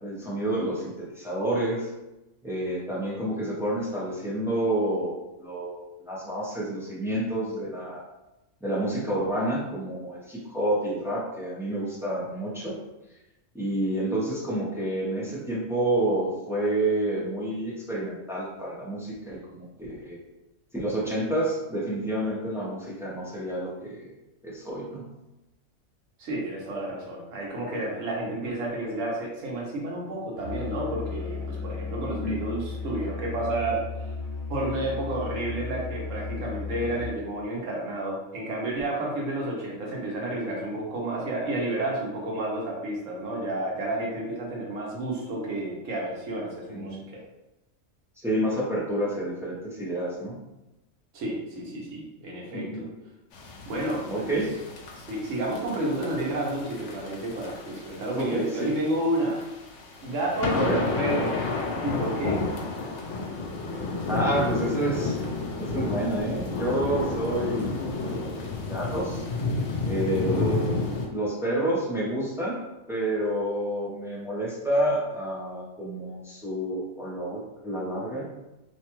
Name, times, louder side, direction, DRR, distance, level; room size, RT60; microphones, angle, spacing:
voice 1, 0.0-1.9 2.4-8.0 8.6-12.8 13.5-20.2 20.7-24.1 24.4-25.1 32.0-32.4 46.7-47.1 48.2-50.4 52.5-52.9 54.0-54.5 58.1-58.7 60.5-60.8 64.1-65.2 65.6-69.3 69.8-70.8 71.1-72.6 72.9-78.3, right 1 dB, 5° right, -6 dB, 0.4 m, -29 dB
voice 2, 26.2-33.8 34.5-47.2 51.1-52.9 53.6-54.3 54.9-59.4 60.0-61.4 61.8-62.4, right 1 dB, 80° right, -3 dB, 1.2 m, -31 dB
Musical instrument, 30.4-37.3, left 4 dB, 40° left, 0.9 m, -35 dB
sound 1, 53.3-71.1, left 3 dB, 75° left, 0.9 m, -31 dB
2.9 x 2.2 x 2.9 m, 0.98 s
omnidirectional pair, 1.3 m